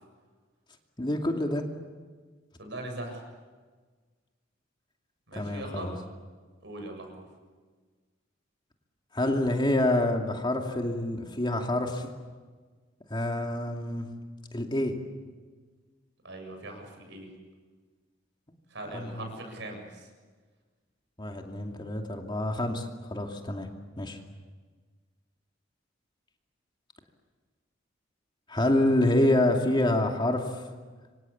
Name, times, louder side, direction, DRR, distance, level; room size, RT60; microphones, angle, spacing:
voice 1, 1.0-1.6 5.3-5.9 9.1-12.1 13.1-14.1 14.5-15.0 18.9-19.3 21.2-23.7 24.0-24.2 28.5-30.6, left 1 dB, 25° left, 3 dB, 2.6 m, -27 dB
voice 2, 2.6-3.2 5.3-6.0 6.6-7.3 16.2-17.3 18.7-20.1, right 1 dB, 65° right, 4 dB, 7.5 m, -40 dB
28.0 x 24.5 x 8.6 m, 1.4 s
head